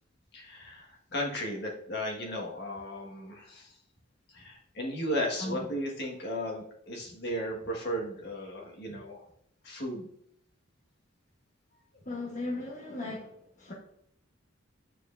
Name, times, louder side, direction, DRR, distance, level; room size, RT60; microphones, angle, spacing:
voice 1, 0.3-3.7 4.3-9.3 9.6-10.1, equal, 55° left, 1.6 m, -35 dB
voice 2, 12.1-13.3 13.6-13.7, left 2 dB, 40° left, 1.2 m, -36 dB
9.4 x 4.7 x 2.6 m
head